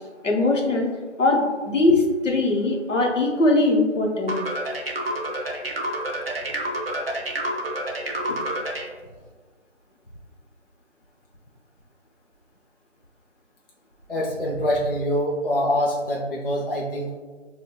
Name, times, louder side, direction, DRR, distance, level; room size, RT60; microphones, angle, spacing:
voice 1, 0.2-0.9 1.2-4.4, left 2 dB, 80° left, 1 dB, 0.8 m, -21 dB
sound 1, 4.3-8.9, right 1 dB, 50° right, 0.5 m, -28 dB
voice 2, 14.1-17.1, equal, 50° left, -4 dB, 0.5 m, -24 dB
4.3 x 2.1 x 2.2 m, 1.4 s
figure-of-eight pair, 170°, 37 cm